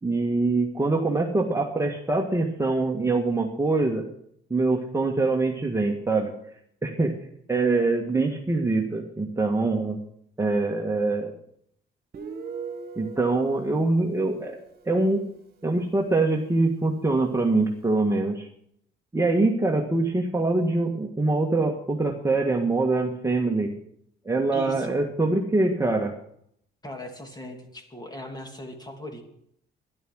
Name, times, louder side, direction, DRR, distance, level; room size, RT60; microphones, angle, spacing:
voice 1, 0.0-4.1 4.5-6.3 6.8-7.1 7.5-10.0 10.4-11.3 12.9-15.2 15.6-18.5 19.1-23.7 24.2-26.1, right 2 dB, 15° right, 1 dB, 1.6 m, -24 dB
Guitar, 12.1-15.7, right 5 dB, 50° right, 1.9 m, -41 dB
voice 2, 24.5-24.9 26.8-29.2, left 1 dB, 20° left, 3 dB, 3.0 m, -39 dB
12.5 x 11.5 x 6.3 m, 0.71 s
cardioid pair, 90°, 20 cm